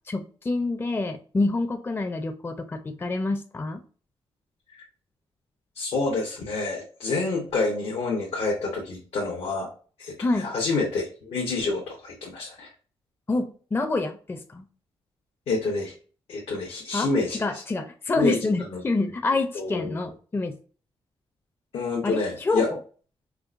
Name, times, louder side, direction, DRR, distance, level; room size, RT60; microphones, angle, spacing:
voice 1, 0.1-3.8 10.2-10.5 13.3-14.6 16.9-20.6 22.0-22.8, left 3 dB, 20° left, 6 dB, 0.4 m, -27 dB
voice 2, 5.8-9.7 10.0-12.7 15.5-15.9 16.3-17.6 18.1-18.8 19.5-20.0 21.7-22.7, left 3 dB, 80° left, -3 dB, 0.8 m, -28 dB
4.5 x 2.1 x 2.4 m, 0.40 s
cardioid pair, 70°, 10 cm